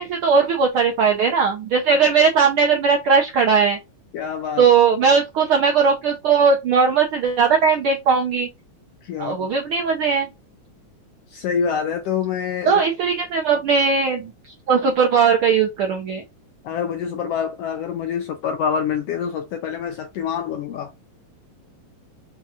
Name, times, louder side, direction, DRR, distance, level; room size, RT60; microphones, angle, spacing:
voice 1, 0.0-3.8 4.6-8.5 9.2-10.3 12.7-14.3 14.7-16.2, right 5 dB, 75° right, 1.2 m, -18 dB
voice 2, 4.1-4.7 9.0-9.5 11.3-12.8 16.6-20.9, left 7 dB, 80° left, 1.4 m, -26 dB
5.7 x 3.8 x 2.4 m
omnidirectional pair, 3.4 m